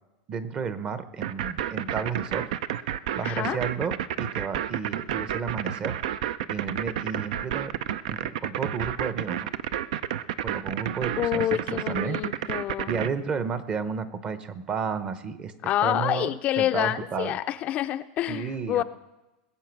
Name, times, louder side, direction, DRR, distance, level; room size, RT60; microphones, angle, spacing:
voice 1, 0.3-2.5 3.2-6.0 6.5-7.7 8.1-9.5 10.4-11.4 11.7-12.5 12.9-15.5 15.8-17.4 18.3-18.8, right 6 dB, 30° right, 12 dB, 0.8 m, -32 dB
sound 1, 1.2-13.1, right 10 dB, 75° right, 0.6 m, -30 dB
voice 2, 3.2-3.6 11.2-12.9 15.6-18.8, left 13 dB, 35° left, 10 dB, 0.4 m, -27 dB
21.0 x 7.7 x 6.1 m, 1.0 s
supercardioid pair, 135°, 4 cm